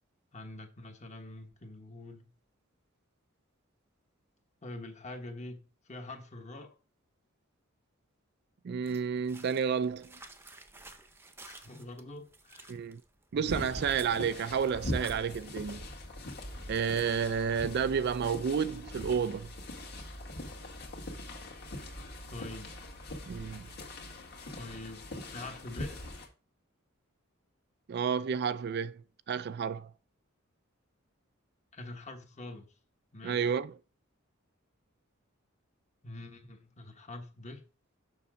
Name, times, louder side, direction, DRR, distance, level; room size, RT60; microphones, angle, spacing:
voice 1, 0.3-2.3 4.6-5.6 5.8-6.8 11.4-12.9 13.3-13.8 22.3-22.7 24.5-26.0 31.7-32.7 33.1-33.4 36.0-37.6, left 2 dB, 35° left, 1.2 m, -45 dB
voice 2, 8.6-10.1 12.7-13.0 13.3-15.9 16.7-19.5 23.3-23.7 27.9-29.0 29.3-29.9 33.2-33.7, right 6 dB, 50° right, 0.4 m, -31 dB
sound 1, 8.8-15.9, right 2 dB, 10° right, 0.7 m, -54 dB
sound 2, 13.5-26.3, left 1 dB, 50° left, 2.0 m, -42 dB
6.9 x 6.0 x 3.7 m
head